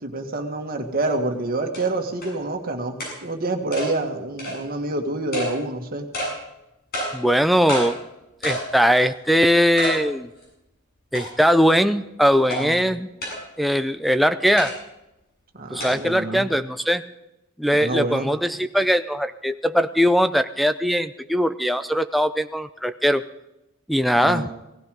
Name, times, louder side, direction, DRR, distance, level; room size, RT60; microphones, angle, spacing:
voice 1, 0.0-6.1 12.5-13.0 15.5-16.5 17.7-18.3 24.1-24.5, right 2 dB, 40° right, 4 dB, 1.9 m, -27 dB
sound 1, 1.0-1.1 1.7-1.8 2.2-2.3 3.0-3.1 3.7-3.9 4.4-4.6 5.3-5.5 6.1-6.3 6.9-7.1 7.7-7.9 8.4-8.7 9.1-9.2 9.8-10.0 10.4-10.5 11.1-11.5 12.5-12.6 13.2-13.4 14.6-14.7 15.8-15.9, equal, 45° left, 7.9 m, -28 dB
voice 2, 7.1-8.0 8.4-10.3 11.1-13.1 13.6-14.7 15.7-17.0 17.6-23.2 23.9-24.4, equal, ahead, 8 dB, 0.5 m, -20 dB
17.5 x 15.5 x 5.3 m, 0.90 s
head